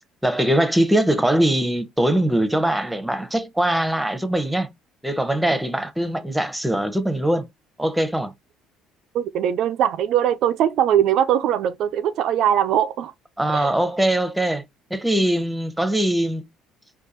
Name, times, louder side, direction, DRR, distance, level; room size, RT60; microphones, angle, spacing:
voice 1, 0.2-4.7 5.0-7.5 7.8-8.3 13.4-14.6 14.9-16.4, right 1 dB, 5° right, 0.8 m, -21 dB
voice 2, 9.1-13.1 13.5-13.7, right 10 dB, 60° right, 0.3 m, -21 dB
4.5 x 2.3 x 2.6 m
hypercardioid pair, 60°, 0 cm